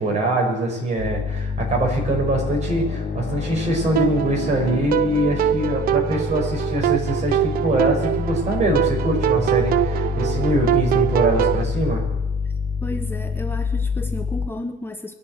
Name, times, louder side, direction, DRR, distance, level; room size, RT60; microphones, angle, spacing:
voice 1, 0.0-12.0, right 1 dB, 45° right, 1 dB, 5.7 m, -23 dB
sound 1, 1.0-14.5, left 5 dB, 55° left, 3.4 m, -27 dB
sound 2, 4.0-11.6, right 13 dB, 60° right, 0.5 m, -23 dB
voice 2, 12.8-15.1, left 1 dB, 15° left, 6 dB, 0.9 m, -32 dB
22.5 x 7.7 x 8.0 m, 1.0 s
cardioid pair, 110°, 17 cm